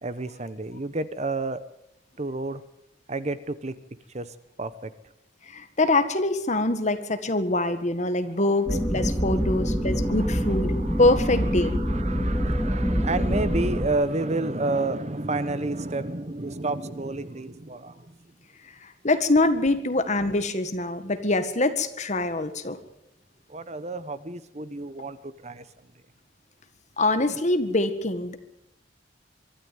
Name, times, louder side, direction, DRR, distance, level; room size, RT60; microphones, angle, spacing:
voice 1, 0.0-1.6 2.2-2.6 3.1-3.7 4.1-4.9 9.4-9.7 10.0-18.1 23.5-25.6, right 2 dB, 35° right, 14 dB, 1.0 m, -31 dB
voice 2, 5.4-10.7 11.0-11.8 18.8-22.8 27.0-28.3, left 2 dB, 40° left, 9 dB, 1.8 m, -24 dB
sound 1, 8.7-13.9, equal, 5° left, 2.5 m, -25 dB
23.5 x 13.0 x 9.3 m, 0.81 s
head